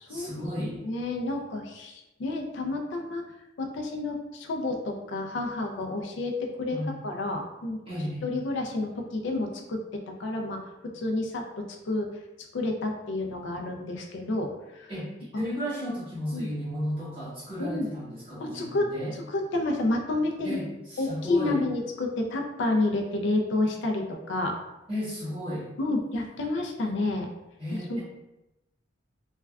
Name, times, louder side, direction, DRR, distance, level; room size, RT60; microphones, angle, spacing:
voice 1, 0.1-0.8 6.7-7.0 7.9-8.3 14.9-19.1 20.4-21.6 24.9-25.7 27.6-28.0, equal, 30° right, -9 dB, 1.1 m, -34 dB
voice 2, 0.8-3.2 3.6-6.8 7.0-7.8 8.2-12.1 12.5-14.9 15.3-15.4 16.3-16.5 17.6-17.9 18.4-18.9 19.3-20.6 21.0-24.5 25.8-27.3 27.9-28.0, left 2 dB, 65° left, 2 dB, 0.4 m, -30 dB
3.3 x 2.2 x 2.2 m, 0.96 s
head